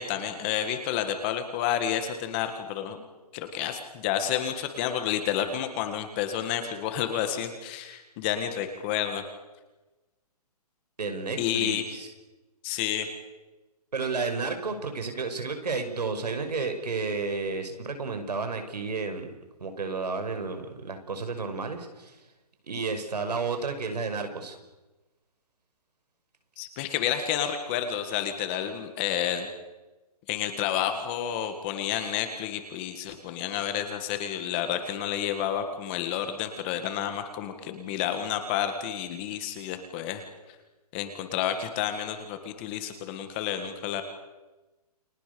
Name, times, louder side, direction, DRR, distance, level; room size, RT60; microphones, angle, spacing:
voice 1, 0.0-3.0 3.3-9.2 11.4-11.8 12.6-13.1 26.6-29.5 30.3-40.2 40.9-44.0, left 10 dB, 15° left, 8 dB, 1.7 m, -30 dB
voice 2, 11.0-12.1 13.9-19.3 19.6-22.2 22.7-24.6, right 4 dB, 85° right, 7 dB, 5.8 m, -32 dB
30.0 x 22.5 x 7.0 m, 1.1 s
hypercardioid pair, 175°, 20 cm